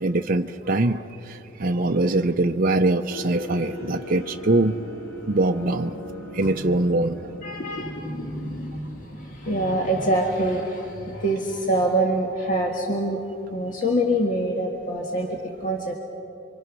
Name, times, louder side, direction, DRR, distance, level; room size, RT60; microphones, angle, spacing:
voice 1, 0.0-4.7 5.3-6.0 6.3-7.2, right 2 dB, 40° right, 4 dB, 0.7 m, -23 dB
sound 1, 3.1-9.7, left 1 dB, 80° left, 3.8 m, -40 dB
voice 2, 6.4-6.8 7.4-13.2 13.5-15.9, right 1 dB, 40° left, 0 dB, 1.8 m, -25 dB
29.5 x 24.5 x 6.2 m, 2.9 s
head